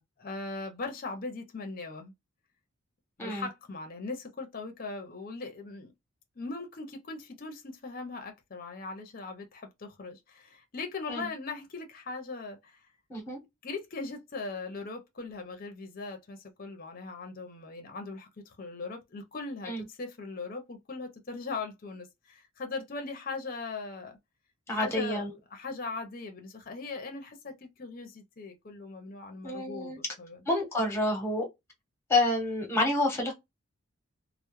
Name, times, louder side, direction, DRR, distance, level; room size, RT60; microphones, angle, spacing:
voice 1, 0.2-2.1 3.2-5.9 6.4-12.8 13.6-24.2 24.7-25.3 25.5-30.4, left 3 dB, 40° left, 0.5 m, -39 dB
voice 2, 13.1-13.4 19.7-19.8 24.7-25.3 29.4-30.0 30.5-31.4 32.1-33.3, left 2 dB, 10° left, 0.8 m, -28 dB
2.2 x 2.0 x 3.0 m
head